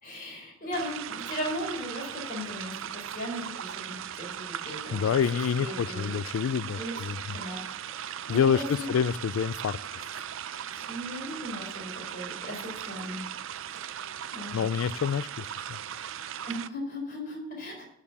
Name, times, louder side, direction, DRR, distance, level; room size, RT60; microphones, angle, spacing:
voice 1, 0.0-5.2 5.6-6.1 6.7-7.6 8.0-8.9 10.9-13.2 13.7-14.1 14.3-14.6 16.4-17.8, equal, 40° left, 0 dB, 4.2 m, -37 dB
sound 1, 0.7-16.7, right 9 dB, 70° right, 0.4 m, -38 dB
voice 2, 4.9-7.2 8.3-10.1 14.5-15.5, left 7 dB, 85° left, 17 dB, 0.3 m, -27 dB
12.0 x 4.9 x 7.1 m, 0.76 s
head